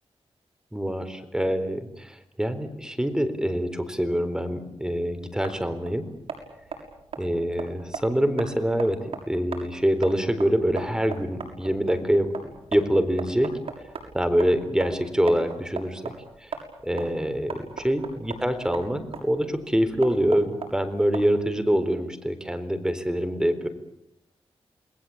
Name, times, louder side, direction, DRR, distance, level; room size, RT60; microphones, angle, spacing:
voice 1, 0.7-6.1 7.2-13.5 14.1-16.1 16.4-16.5 16.8-23.7, equal, 5° right, 10 dB, 4.0 m, -25 dB
sound 1, 4.8-21.6, right 5 dB, 65° right, 6.7 m, -39 dB
28.5 x 20.5 x 8.7 m, 0.77 s
cardioid pair, 80°, 10 cm